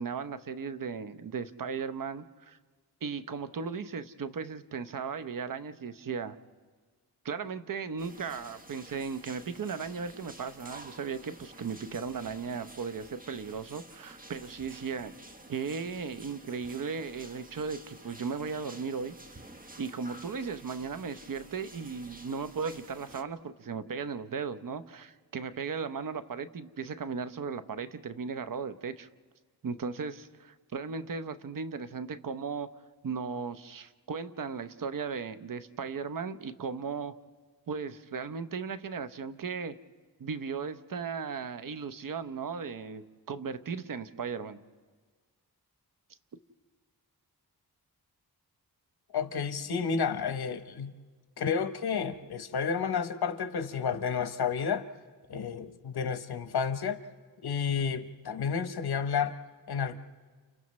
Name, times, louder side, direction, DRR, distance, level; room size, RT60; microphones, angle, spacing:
voice 1, 0.0-2.6 3.0-6.4 7.2-15.1 15.5-19.1 19.8-29.1 29.6-32.7 33.0-37.1 37.7-39.7 40.2-44.6, right 5 dB, 55° right, 11 dB, 0.8 m, -36 dB
sound 1, 8.0-23.2, right 1 dB, 20° right, 1.2 m, -51 dB
voice 2, 49.1-50.9 51.4-54.8 55.3-57.0 57.4-59.4 59.7-60.0, left 6 dB, 75° left, 10 dB, 1.0 m, -31 dB
30.0 x 29.5 x 3.2 m, 1.4 s
wide cardioid pair, 80°, 38 cm